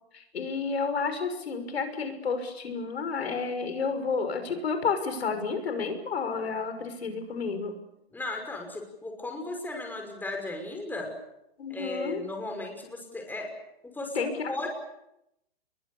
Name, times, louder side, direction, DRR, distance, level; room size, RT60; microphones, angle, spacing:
voice 1, 0.1-7.7 11.6-12.2 14.1-14.5, left 5 dB, 85° left, 8 dB, 6.1 m, -31 dB
voice 2, 8.1-11.1 11.7-13.5 13.8-14.7, left 2 dB, 5° left, 2 dB, 5.9 m, -36 dB
30.0 x 22.5 x 7.0 m, 0.83 s
hypercardioid pair, 135°, 31 cm